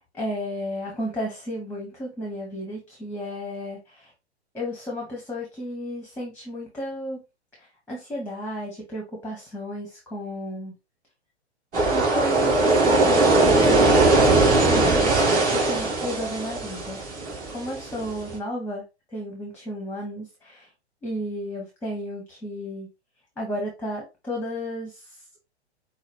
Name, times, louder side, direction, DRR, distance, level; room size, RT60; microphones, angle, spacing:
voice 1, 0.1-4.1 4.5-7.2 7.9-10.7 11.9-14.0 14.3-17.0 17.5-18.8 19.1-20.7 21.0-22.9 23.4-25.0, equal, 5° left, -1 dB, 1.6 m, -33 dB
sound 1, 11.7-18.4, right 2 dB, 25° right, 2.6 m, -20 dB
6.3 x 2.4 x 3.5 m, 0.25 s
figure-of-eight pair, 110°, 34 cm